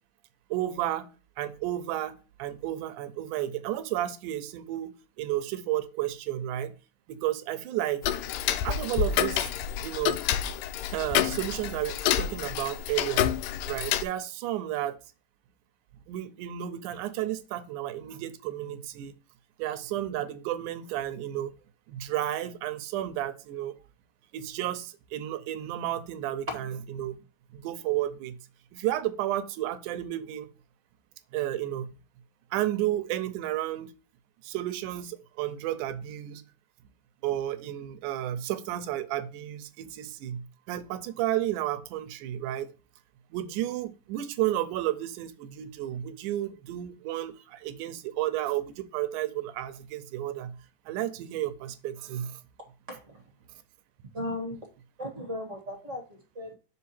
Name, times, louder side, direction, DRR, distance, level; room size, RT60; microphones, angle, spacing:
voice 1, 0.5-1.1 1.4-4.9 5.2-6.7 7.1-8.0 8.6-9.5 9.8-10.2 10.9-13.3 13.7-15.0 16.1-19.1 19.6-21.5 21.9-23.8 24.3-26.6 27.0-27.2 27.5-28.4 28.7-30.5 31.3-31.9 32.5-33.9 34.4-36.4 37.2-42.7 43.3-50.6 50.9-52.4, right 13 dB, 80° right, 2.0 m, -32 dB
Tick-tock, 8.0-14.0, left 11 dB, 85° left, 2.2 m, -28 dB
voice 2, 52.9-53.2 54.1-54.6 55.0-56.5, left 1 dB, 40° right, 1.0 m, -37 dB
5.9 x 4.7 x 4.3 m
omnidirectional pair, 3.7 m